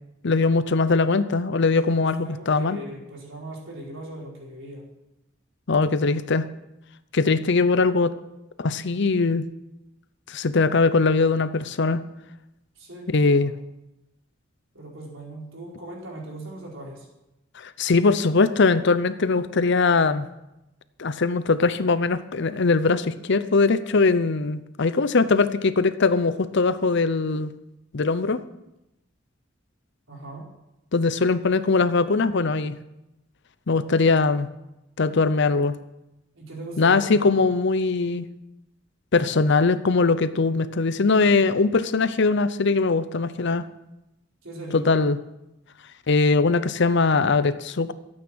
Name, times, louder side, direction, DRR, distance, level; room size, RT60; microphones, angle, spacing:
voice 1, 0.2-2.8 5.7-6.5 7.1-8.1 8.6-9.5 10.3-12.0 13.1-13.5 17.6-20.3 21.0-27.5 27.9-28.4 30.9-32.8 33.7-34.5 35.0-35.7 36.8-38.3 39.1-43.6 44.7-45.2 46.1-47.9, left 4 dB, 60° left, 14 dB, 0.7 m, -21 dB
voice 2, 1.7-4.9 12.8-13.5 14.7-17.1 30.1-30.5 36.3-37.3 44.4-44.9, right 1 dB, 75° right, -3 dB, 4.5 m, -39 dB
13.0 x 8.8 x 6.3 m, 0.92 s
head